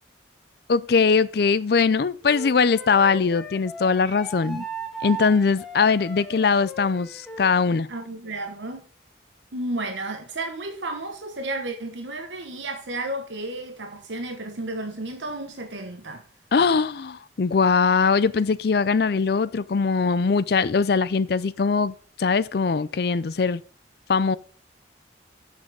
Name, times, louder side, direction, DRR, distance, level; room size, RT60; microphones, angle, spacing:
voice 1, 0.7-4.6 5.0-7.9 16.5-23.6 24.1-24.4, left 5 dB, 55° left, 0.4 m, -21 dB
Wind instrument woodwind instrument, 2.2-7.5, right 3 dB, ahead, 1.5 m, -37 dB
voice 2, 7.9-8.8 9.5-16.2, right 2 dB, 75° right, 1.1 m, -32 dB
7.4 x 6.2 x 6.3 m
head